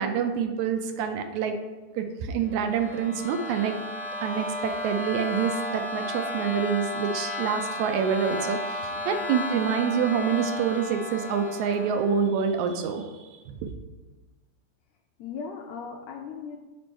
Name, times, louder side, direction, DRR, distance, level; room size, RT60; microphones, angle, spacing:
voice 1, 0.0-1.6 2.0-3.7 4.2-13.7, right 7 dB, 80° right, 6 dB, 1.8 m, -27 dB
sound 1, 2.5-12.2, left 2 dB, 50° left, 0.7 m, -34 dB
voice 2, 8.9-9.3 15.2-16.6, left 6 dB, 80° left, 2 dB, 1.6 m, -38 dB
5.2 x 4.3 x 6.1 m, 1.2 s
omnidirectional pair, 3.5 m